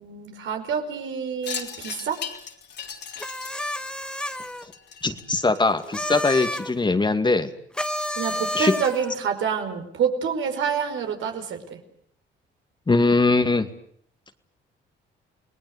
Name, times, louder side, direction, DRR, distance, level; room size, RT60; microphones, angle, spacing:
voice 1, 0.0-2.2 8.1-11.8, right 7 dB, 75° right, 5 dB, 5.2 m, -27 dB
Wind chime, 1.4-6.1, left 7 dB, 60° left, 3.9 m, -38 dB
sound 1, 3.2-4.7 5.8-6.7 7.7-9.2, equal, 5° left, 1.5 m, -30 dB
voice 2, 5.0-7.5 8.5-8.7 12.9-13.7, left 3 dB, 25° left, 9 dB, 2.2 m, -21 dB
28.5 x 19.5 x 8.2 m, 0.64 s
cardioid pair, 90°, 20 cm